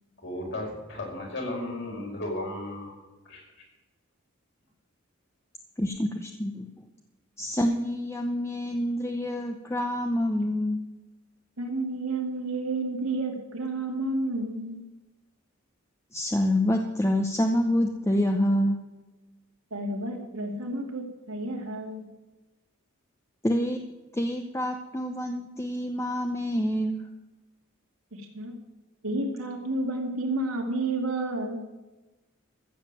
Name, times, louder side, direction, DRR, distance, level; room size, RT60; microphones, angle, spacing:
voice 1, 0.2-3.0 3.3-3.4, left 1 dB, 55° left, -1 dB, 4.9 m, -34 dB
voice 2, 5.8-6.7 7.4-10.9 16.1-18.8 23.4-23.8 24.1-27.0, left 1 dB, 15° left, 4 dB, 0.7 m, -27 dB
voice 3, 11.6-14.8 19.7-22.0 28.1-28.5 29.0-31.6, right 2 dB, 90° right, 1 dB, 2.7 m, -31 dB
15.0 x 7.3 x 7.6 m, 1.1 s
head